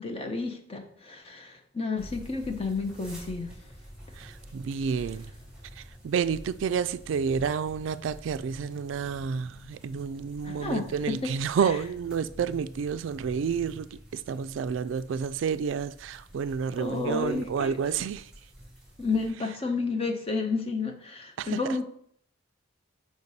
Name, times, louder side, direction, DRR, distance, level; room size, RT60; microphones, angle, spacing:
voice 1, 0.0-3.5 10.4-11.3 16.8-18.0 19.0-21.9, left 4 dB, 30° left, 0.9 m, -31 dB
sound 1, 2.0-19.3, equal, 5° right, 2.5 m, -48 dB
voice 2, 4.2-5.3 5.8-18.3 21.4-21.6, right 6 dB, 65° right, 0.3 m, -30 dB
6.7 x 5.1 x 4.1 m
head